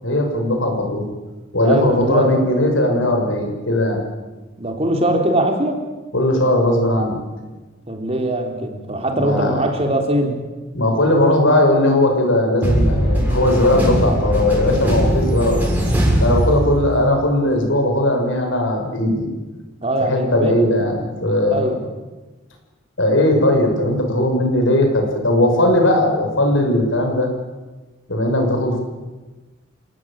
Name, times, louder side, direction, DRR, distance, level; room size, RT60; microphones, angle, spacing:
voice 1, 0.0-1.1 1.5-4.0 6.1-7.2 9.1-9.6 10.7-15.6 16.2-19.3 20.0-21.8 23.0-27.3 28.1-28.8, left 1 dB, 75° left, 3 dB, 6.9 m, -18 dB
voice 2, 1.6-2.4 4.6-5.9 7.9-10.4 19.8-20.5 21.5-21.8, right 1 dB, 30° right, 3 dB, 3.8 m, -21 dB
sound 1, 12.6-17.1, equal, 10° right, 6.8 m, -19 dB
28.5 x 18.5 x 9.2 m, 1.2 s
head